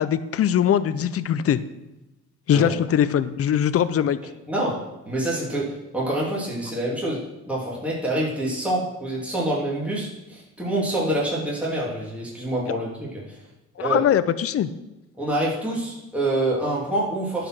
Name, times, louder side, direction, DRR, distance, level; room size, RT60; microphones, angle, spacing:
voice 1, 0.0-1.6 2.5-4.2 12.7-12.8 13.8-14.7, left 9 dB, 50° left, 14 dB, 0.6 m, -21 dB
voice 2, 4.5-13.3 13.8-14.0 15.2-17.5, right 1 dB, 5° right, -6 dB, 3.0 m, -26 dB
10.5 x 5.1 x 6.1 m, 0.98 s
cardioid pair, 90°, 30 cm